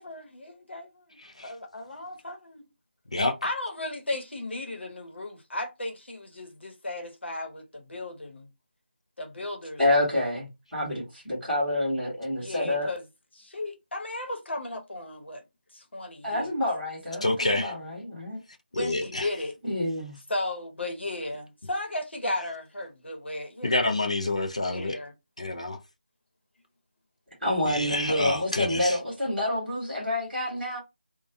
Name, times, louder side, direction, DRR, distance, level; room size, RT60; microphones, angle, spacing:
voice 1, 0.0-2.7 3.4-8.5 9.2-9.8 12.4-13.0 13.3-15.4 15.7-16.5 17.1-17.3 18.8-19.5 20.3-23.9 24.7-25.1, left 2 dB, 75° left, 0.9 m, -35 dB
voice 2, 9.8-12.9 16.2-18.4 19.6-20.2 27.4-30.8, left 1 dB, ahead, 0.8 m, -28 dB
voice 3, 17.2-17.7 18.7-19.3 23.6-25.0 25.4-25.8 27.7-29.0, left 2 dB, 35° left, 0.4 m, -28 dB
2.2 x 2.2 x 2.6 m
figure-of-eight pair, 180°, 6 cm